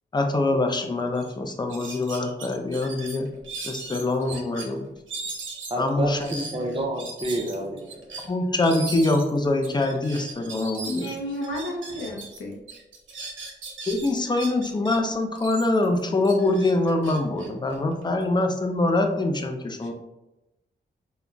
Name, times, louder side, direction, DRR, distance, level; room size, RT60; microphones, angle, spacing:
voice 1, 0.1-3.3 3.6-4.9 5.8-6.4 8.2-11.1 13.9-19.9, left 2 dB, 25° left, 4 dB, 0.4 m, -24 dB
sound 1, 0.7-0.9 1.1-1.3 1.7-4.7 5.1-12.4 12.7-15.0 15.4-18.2, right 3 dB, 90° right, 0.6 m, -38 dB
voice 2, 5.7-8.1, right 1 dB, 25° right, 1 dB, 0.6 m, -29 dB
voice 3, 10.9-12.6, left 1 dB, 85° left, 0 dB, 0.6 m, -32 dB
3.6 x 2.1 x 2.3 m, 0.96 s
cardioid pair, 55°, 19 cm